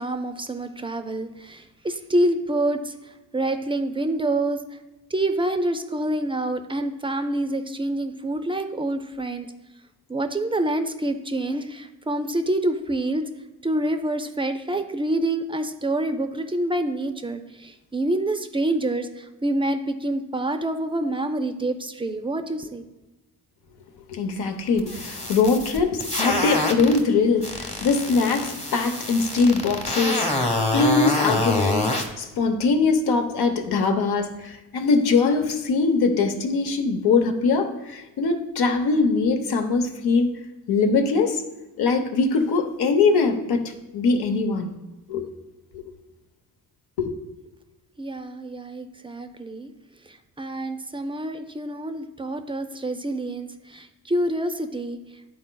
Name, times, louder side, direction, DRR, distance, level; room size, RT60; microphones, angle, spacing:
voice 1, 0.0-4.8 5.1-9.5 10.1-13.3 13.6-22.8 48.0-49.7 50.1-55.0, right 1 dB, 15° right, 8 dB, 0.4 m, -27 dB
voice 2, 24.1-40.3 40.7-41.4 41.8-44.7 45.1-45.3 45.7-45.9 47.0-47.1, left 4 dB, 85° left, 6 dB, 0.9 m, -22 dB
sound 1, 24.8-27.0 27.4-32.1, left 1 dB, 15° left, 0.9 m, -26 dB
11.0 x 4.3 x 2.2 m, 1.0 s
cardioid pair, 120°, 37 cm